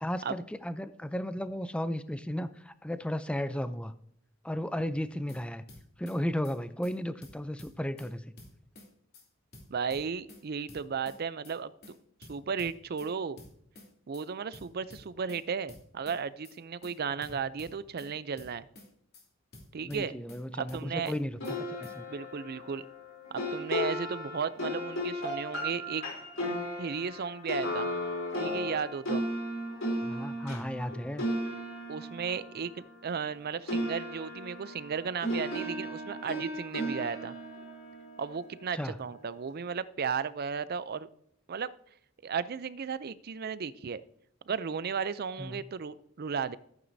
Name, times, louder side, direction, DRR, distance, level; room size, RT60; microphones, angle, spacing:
voice 1, 0.0-3.9 4.4-5.6 6.0-8.3 17.3-17.4 19.8-22.0 30.0-31.2 38.7-39.0 45.4-45.6, equal, 5° left, 12 dB, 0.4 m, -34 dB
sound 1, 5.0-5.4 5.7-6.2 6.4-6.6 6.8-6.9 7.2-8.1 8.4-8.9 9.1-9.3 9.5-10.4 10.7-11.2 11.4-11.6 11.8-11.9 12.2-13.1 13.4-13.9 14.1-14.3 14.5-15.4 15.7-16.2 16.4-16.6 16.8-16.9 17.2-18.1 18.4-18.9 19.1-19.3 19.5-20.4 20.7-21.2 21.4-21.6 21.8-21.9, left 1 dB, 50° left, 2.8 m, -51 dB
voice 2, 9.7-12.0 12.3-13.4 14.1-18.6 19.7-20.1 20.6-21.1 22.1-22.8 23.5-26.0 26.8-27.9 28.4-29.2 31.9-37.3 38.2-41.1 41.5-41.7 42.2-44.0 44.5-46.6, right 6 dB, 50° right, 16 dB, 0.5 m, -35 dB
sound 2, 21.4-33.4 33.7-38.9, equal, 80° left, 3.4 m, -36 dB
14.0 x 9.0 x 2.7 m, 0.69 s
head